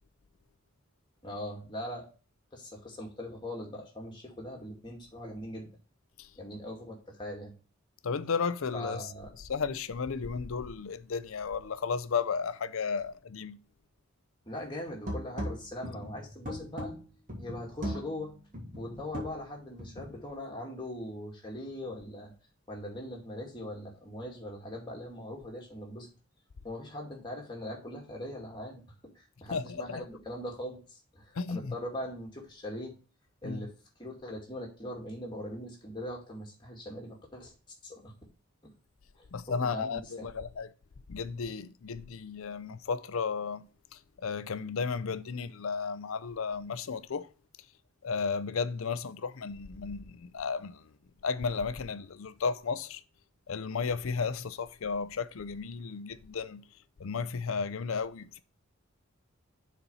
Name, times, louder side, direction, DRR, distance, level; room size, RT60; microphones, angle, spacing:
voice 1, 1.2-2.1 2.5-5.7 6.4-7.5 8.7-9.4 14.5-16.9 17.4-18.3 18.8-22.3 22.7-26.1 26.6-28.8 29.1-32.9 33.4-33.7 34.0-37.5 37.8-38.1 38.6-38.7 39.1-40.3, left 1 dB, 20° left, 2.1 m, -41 dB
voice 2, 8.0-9.0 9.5-13.6 29.5-30.0 31.4-31.7 33.4-33.7 39.3-40.7 41.1-43.6 44.2-47.3 48.0-50.8 51.2-53.0 53.5-56.6 57.0-58.4, left 5 dB, 70° left, 0.5 m, -33 dB
sound 1, 14.9-20.2, equal, 35° right, 2.6 m, -39 dB
6.9 x 4.3 x 5.4 m
head